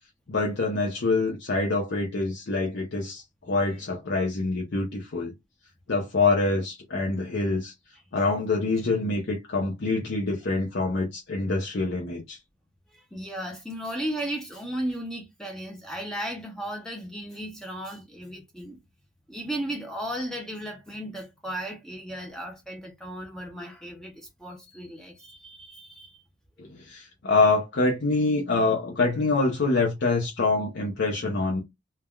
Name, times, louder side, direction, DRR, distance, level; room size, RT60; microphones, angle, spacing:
voice 1, 0.3-5.3 5.9-7.7 8.1-12.4 26.6-31.6, left 3 dB, 60° left, 0.6 m, -25 dB
voice 2, 12.9-18.8 19.3-26.2 26.6-26.7, right 1 dB, 5° left, 0.5 m, -35 dB
3.3 x 2.2 x 2.2 m
head